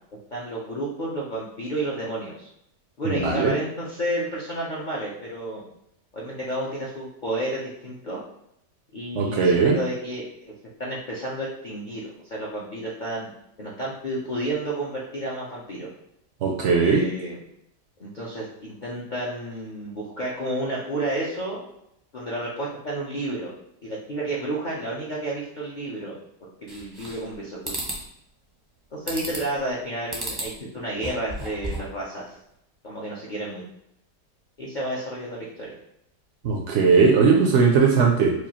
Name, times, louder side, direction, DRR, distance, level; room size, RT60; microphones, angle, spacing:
voice 1, 0.3-2.5 3.0-5.6 6.1-8.2 8.9-10.5 10.8-13.3 13.6-15.9 16.8-17.4 18.0-21.7 22.1-23.5 23.8-26.1 26.6-27.8 28.9-32.3 32.8-33.6 34.6-35.7, right 1 dB, 60° left, -6 dB, 0.4 m, -31 dB
voice 2, 3.1-3.5 9.2-9.8 16.4-17.0 36.4-38.3, right 5 dB, 70° right, 0 dB, 0.6 m, -19 dB
sound 1, 26.7-27.3 27.6-28.0 29.1-29.6 30.1-30.5 30.9-32.0, right 1 dB, 25° right, 0.5 m, -33 dB
4.7 x 2.4 x 2.9 m, 0.77 s
omnidirectional pair, 1.8 m